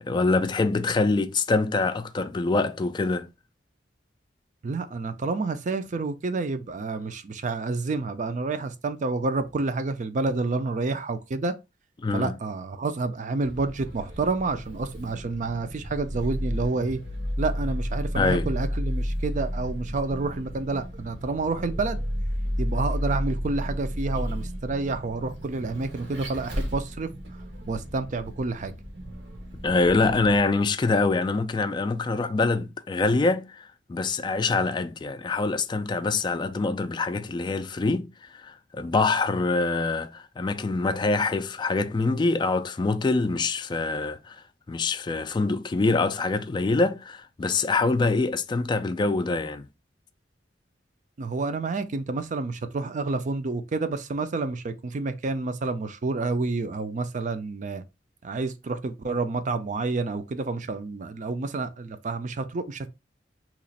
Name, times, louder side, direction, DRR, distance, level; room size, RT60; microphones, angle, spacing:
voice 1, 0.0-3.3 12.0-12.4 18.1-18.5 29.6-38.1 38.4-44.4 44.7-49.7, left 3 dB, 25° left, 0.3 m, -25 dB
voice 2, 4.6-11.5 12.1-17.0 17.4-22.0 22.6-27.1 27.7-28.7 51.2-57.8 58.2-62.9, right 3 dB, 45° right, 0.4 m, -29 dB
Vehicle, 13.4-30.4, equal, 90° right, 1.2 m, -32 dB
3.0 x 2.4 x 4.0 m
head